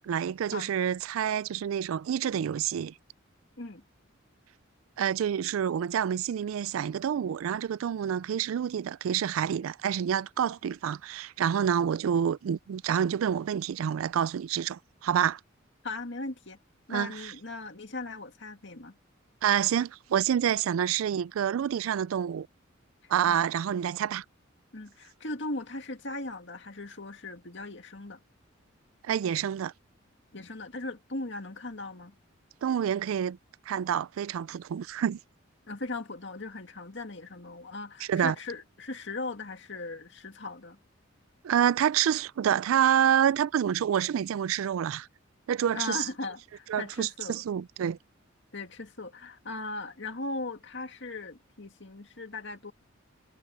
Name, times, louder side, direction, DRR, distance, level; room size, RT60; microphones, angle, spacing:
voice 1, 0.0-2.9 5.0-15.4 16.9-17.3 19.4-22.5 23.1-24.2 29.0-29.7 32.6-33.4 33.7-35.2 38.1-38.4 41.4-45.1 45.5-46.1 46.7-48.0, right 9 dB, 85° right, 0.3 m, -28 dB
voice 2, 15.8-16.6 16.9-19.0 23.3-23.4 24.7-28.2 30.3-32.1 35.7-40.8 45.7-47.4 48.5-52.7, left 2 dB, 60° left, 2.2 m, -38 dB
head